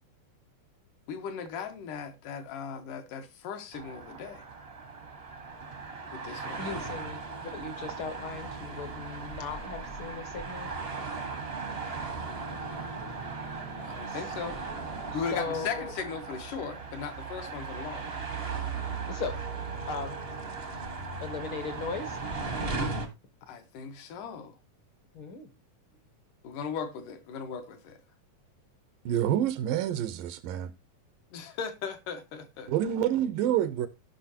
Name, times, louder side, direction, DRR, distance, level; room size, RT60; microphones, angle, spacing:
voice 1, 1.1-4.4 6.1-6.6 12.3-14.6 15.1-18.1 23.5-24.5 26.4-28.0 31.3-32.7, left 6 dB, 75° left, 2.7 m, -38 dB
sound 1, 3.7-23.1, right 4 dB, 50° right, 0.7 m, -37 dB
voice 2, 6.2-10.7 14.1-14.2 15.1-15.9 19.1-19.4 19.9-20.2 21.2-22.2 25.1-25.5, left 5 dB, 60° left, 1.4 m, -38 dB
voice 3, 29.1-30.7 32.7-33.9, right 11 dB, 85° right, 2.5 m, -27 dB
16.0 x 5.7 x 2.8 m
omnidirectional pair, 3.8 m